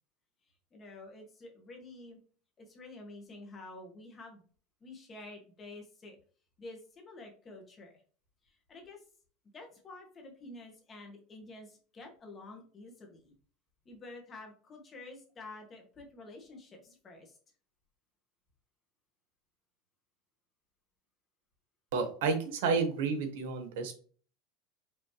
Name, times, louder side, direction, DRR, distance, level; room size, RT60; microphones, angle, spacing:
voice 1, 0.7-2.2 2.6-4.4 4.8-6.2 6.6-7.9 8.4-9.0 9.5-13.3 13.8-17.4, left 2 dB, 25° left, 2 dB, 1.3 m, -49 dB
voice 2, 21.9-23.9, right 4 dB, 80° right, 6 dB, 1.2 m, -30 dB
5.5 x 3.0 x 3.1 m, 0.41 s
supercardioid pair, 150°, 0 cm